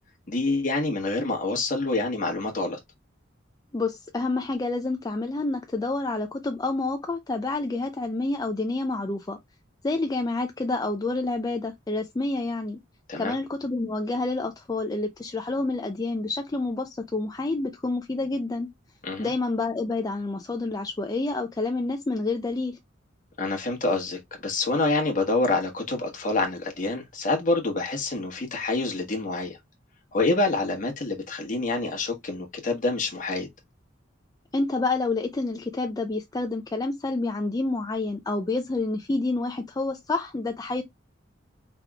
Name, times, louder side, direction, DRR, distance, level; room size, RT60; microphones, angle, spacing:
voice 1, 0.3-2.8 13.1-13.3 19.0-19.3 23.4-29.6 30.1-33.5, left 2 dB, 45° left, 1.3 m, -27 dB
voice 2, 3.7-9.4 9.8-12.8 13.2-18.7 19.2-22.8 34.5-40.8, left 2 dB, 20° left, 0.4 m, -28 dB
4.7 x 3.4 x 2.3 m
head